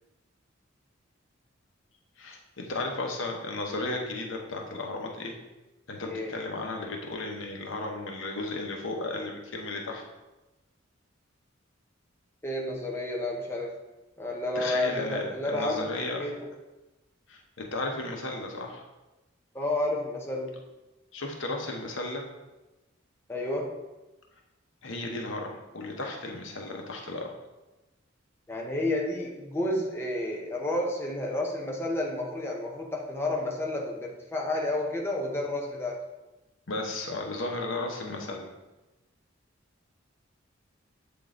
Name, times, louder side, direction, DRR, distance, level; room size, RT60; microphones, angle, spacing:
voice 1, 2.2-5.4 5.9-10.0 14.5-16.2 17.3-18.8 21.1-22.3 24.8-27.3 36.7-38.5, left 2 dB, 75° left, 1 dB, 1.0 m, -34 dB
voice 2, 12.4-13.8 14.2-15.9 16.2-16.5 19.5-20.6 23.3-23.7 28.5-36.0, left 1 dB, 10° left, -2 dB, 0.8 m, -30 dB
7.8 x 3.8 x 3.7 m, 1.0 s
head